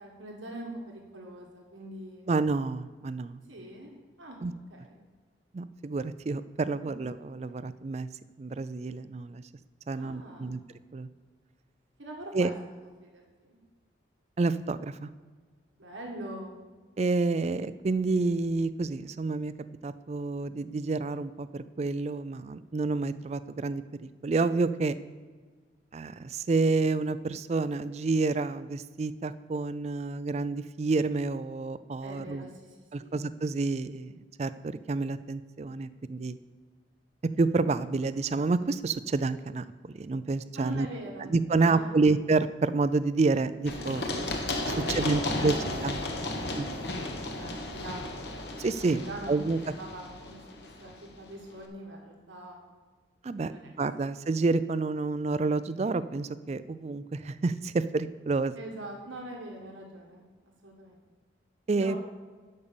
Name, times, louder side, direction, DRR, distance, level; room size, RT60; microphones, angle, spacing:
voice 1, 0.0-2.2 3.5-3.9 4.2-4.4 4.7-5.0 9.9-10.6 12.0-12.5 13.0-13.6 15.8-16.6 32.0-33.1 40.5-42.0 43.8-46.3 47.0-48.2 48.9-52.6 53.4-54.0 58.5-61.0 61.7-62.0, right 1 dB, 90° right, 0 dB, 1.6 m, -43 dB
voice 2, 2.3-3.4 4.4-4.5 5.5-8.1 8.4-9.4 9.9-10.6 10.9-11.1 12.3-12.5 14.4-15.1 17.0-19.5 19.8-24.9 25.9-32.5 32.9-36.4 37.4-40.9 41.2-44.0 44.9-45.5 45.8-46.0 46.6-46.7 48.6-49.0 49.3-49.6 53.2-53.5 53.8-58.5 61.7-62.0, right 3 dB, 35° right, 14 dB, 0.3 m, -29 dB
Run, 43.7-51.3, left 2 dB, 60° left, 1.2 m, -34 dB
12.0 x 5.3 x 6.9 m, 1.5 s
head